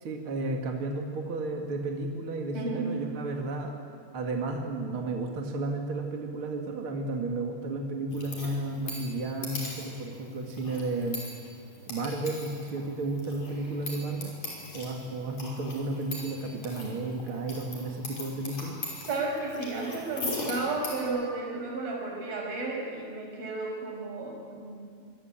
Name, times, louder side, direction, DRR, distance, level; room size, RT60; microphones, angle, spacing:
voice 1, 0.0-3.7 4.1-11.3 11.9-14.3 14.7-18.8, right 2 dB, 40° right, 1 dB, 2.4 m, -33 dB
voice 2, 2.5-2.9 19.1-25.1, right 3 dB, 60° right, -1 dB, 8.2 m, -33 dB
sound 1, 8.1-21.0, left 2 dB, 40° left, 6.8 m, -41 dB
26.0 x 24.0 x 9.0 m, 2.2 s
omnidirectional pair, 4.7 m